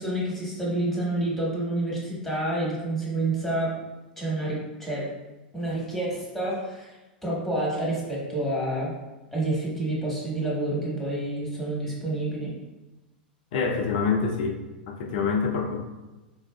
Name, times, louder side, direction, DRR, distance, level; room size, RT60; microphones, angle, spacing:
voice 1, 0.0-3.8 4.2-5.1 5.5-6.9 7.2-8.9 9.3-12.5, right 1 dB, ahead, -5 dB, 1.3 m, -28 dB
voice 2, 13.5-14.6 14.9-15.8, left 5 dB, 60° left, 2 dB, 0.5 m, -26 dB
4.0 x 2.4 x 2.2 m, 1.1 s
hypercardioid pair, 95°, 5 cm